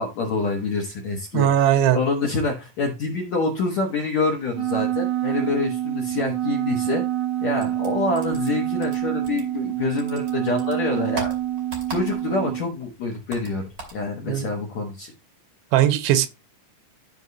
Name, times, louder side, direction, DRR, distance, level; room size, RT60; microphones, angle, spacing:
voice 1, 0.0-7.0 7.4-11.3 11.9-13.6 13.9-15.1, left 3 dB, 70° left, 1.7 m, -26 dB
voice 2, 1.3-2.0 14.3-14.5 15.7-16.3, right 11 dB, 90° right, 3.1 m, -19 dB
Wind instrument woodwind instrument, 4.5-12.6, right 13 dB, 65° right, 2.6 m, -26 dB
sound 1, 7.6-9.7 10.0-12.5 12.7-14.0, right 3 dB, 35° right, 2.5 m, -39 dB
13.5 x 4.9 x 2.7 m
omnidirectional pair, 5.2 m